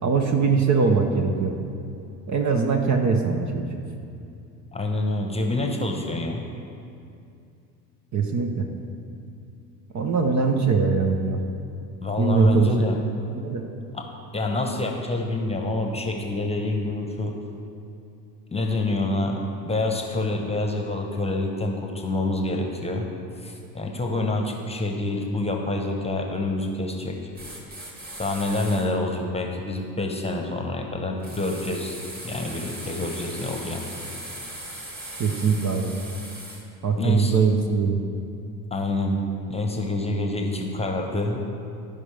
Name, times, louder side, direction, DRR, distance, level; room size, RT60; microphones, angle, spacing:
voice 1, 0.0-1.6 2.3-3.8 8.1-8.7 9.9-11.4 12.2-12.7 13.3-13.7 35.2-35.9 36.8-38.0, right 5 dB, 35° right, 4 dB, 0.9 m, -22 dB
voice 2, 4.7-6.4 12.0-13.0 13.9-14.1 14.3-17.4 18.5-23.1 23.4-27.2 28.2-32.0 32.2-33.9 37.0-37.4 38.7-39.2 39.5-41.4, left 2 dB, 10° left, 2 dB, 1.1 m, -27 dB
sound 1, 27.3-28.9 31.2-36.6, right 1 dB, 20° right, 2.1 m, -38 dB
15.5 x 5.3 x 3.5 m, 2.6 s
hypercardioid pair, 70°, 49 cm